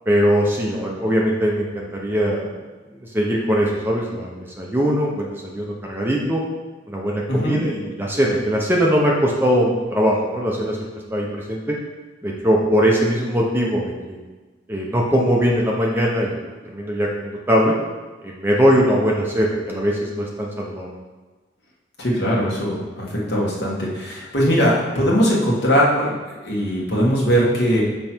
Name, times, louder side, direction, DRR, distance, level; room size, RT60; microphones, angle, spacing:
voice 1, 0.1-2.5 3.1-6.4 6.9-11.7 12.2-14.2 14.7-16.4 16.6-17.7 18.2-20.9, equal, 10° right, -2 dB, 0.8 m, -21 dB
voice 2, 22.0-26.2 26.4-27.8, equal, 65° left, -4 dB, 1.7 m, -20 dB
5.5 x 5.4 x 4.5 m, 1.3 s
head